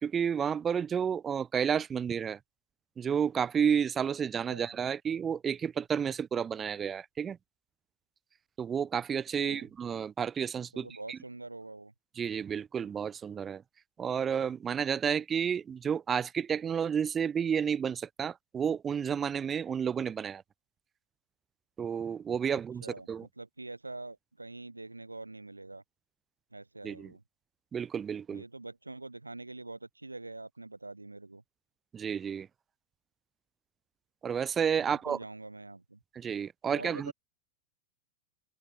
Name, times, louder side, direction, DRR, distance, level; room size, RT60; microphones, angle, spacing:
voice 1, 0.0-2.4 3.0-7.4 8.6-11.2 12.2-13.6 14.0-20.4 21.8-23.3 26.8-27.1 27.7-28.4 31.9-32.5 34.2-35.2 36.1-37.1, right 7 dB, 20° right, 0.7 m, -31 dB
voice 2, 9.4-9.7 10.7-11.9 22.8-23.1 23.4-25.8 26.5-27.2 28.3-31.4 34.8-36.0 36.7-37.1, right 2 dB, 85° right, 0.6 m, -44 dB
figure-of-eight pair, 90°, 0 cm